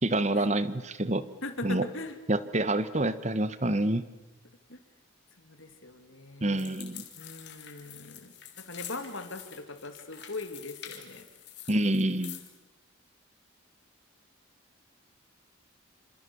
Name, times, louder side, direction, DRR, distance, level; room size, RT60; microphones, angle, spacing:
voice 1, 0.0-1.2 1.6-1.9 2.3-4.0 6.4-7.0 11.7-12.4, right 1 dB, 35° right, 14 dB, 1.2 m, -27 dB
voice 2, 1.4-2.2 4.7-4.8 5.4-6.8 7.2-11.3, left 2 dB, 70° left, 8 dB, 2.7 m, -41 dB
sound 1, 6.5-12.6, left 11 dB, 55° left, 3.5 m, -47 dB
28.5 x 26.0 x 7.0 m, 1.1 s
head